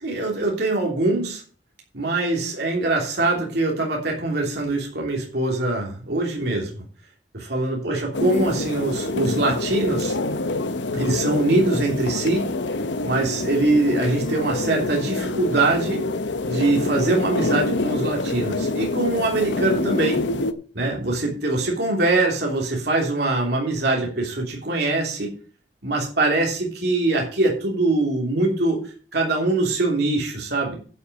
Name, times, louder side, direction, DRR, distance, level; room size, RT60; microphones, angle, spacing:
voice 1, 0.0-1.4 1.9-6.8 7.3-10.2 10.9-12.4 13.0-16.0 16.5-20.2 20.7-25.3 25.8-30.7, right 2 dB, 65° right, -1 dB, 3.2 m, -23 dB
sound 1, 8.1-20.5, left 2 dB, 90° left, 0.9 m, -26 dB
11.0 x 5.8 x 6.8 m, 0.41 s
head